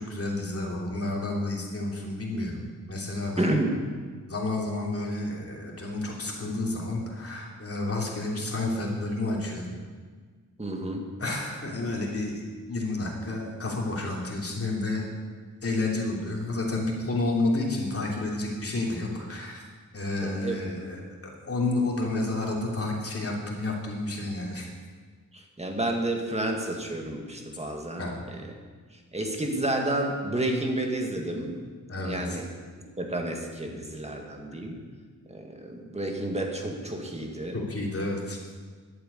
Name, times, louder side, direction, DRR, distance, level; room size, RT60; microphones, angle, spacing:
voice 1, 0.0-2.6 2.9-3.5 4.3-9.7 11.2-15.1 15.6-19.6 19.9-24.7 28.0-28.2 31.9-32.4 37.5-38.4, left 2 dB, 45° left, -2 dB, 3.0 m, -30 dB
voice 2, 3.4-3.7 10.6-11.0 20.2-20.5 25.3-28.4 29.1-31.6 32.0-32.4 33.0-34.8 35.3-37.6, right 1 dB, 20° right, 2 dB, 2.0 m, -30 dB
11.5 x 8.6 x 8.3 m, 1.5 s
wide cardioid pair, 115°, 33 cm